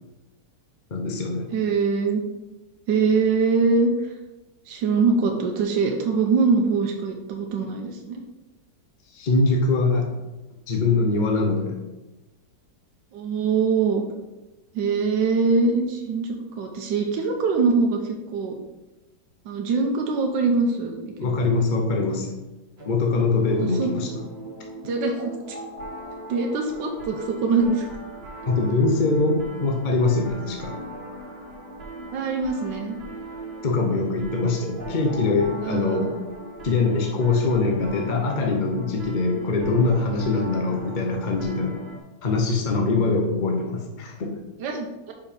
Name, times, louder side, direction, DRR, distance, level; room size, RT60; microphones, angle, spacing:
voice 1, 0.9-1.5 9.1-10.1 10.7-11.7 21.2-22.3 22.8-24.1 28.5-30.7 33.6-36.1 36.6-41.8 42.2-44.3, left 3 dB, 40° left, 1 dB, 0.7 m, -23 dB
voice 2, 1.5-2.2 2.9-4.1 4.7-8.2 13.1-14.0 14.7-18.6 19.4-21.6 23.6-23.9 24.8-25.6 26.3-27.9 32.1-33.0 35.6-36.2 44.6-45.1, right 4 dB, 80° right, 2 dB, 1.4 m, -23 dB
sound 1, 22.8-42.0, right 2 dB, 35° right, 1.5 m, -39 dB
5.3 x 4.6 x 5.1 m, 1.0 s
omnidirectional pair, 1.9 m